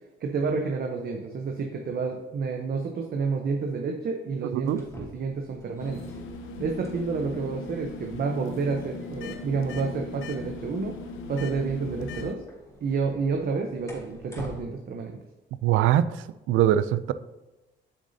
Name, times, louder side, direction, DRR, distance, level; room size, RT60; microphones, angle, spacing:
voice 1, 0.2-6.0 6.6-11.0 11.3-12.4 12.8-15.2, right 4 dB, 50° right, 2 dB, 0.8 m, -29 dB
sound 1, 4.6-14.6, left 1 dB, 15° left, 2.1 m, -49 dB
sound 2, 5.8-12.4, left 3 dB, 90° left, 0.6 m, -38 dB
voice 2, 15.6-16.2 16.5-17.1, right 11 dB, 85° right, 14 dB, 0.4 m, -22 dB
8.0 x 6.2 x 2.7 m, 1.1 s
cardioid pair, 90°, 20 cm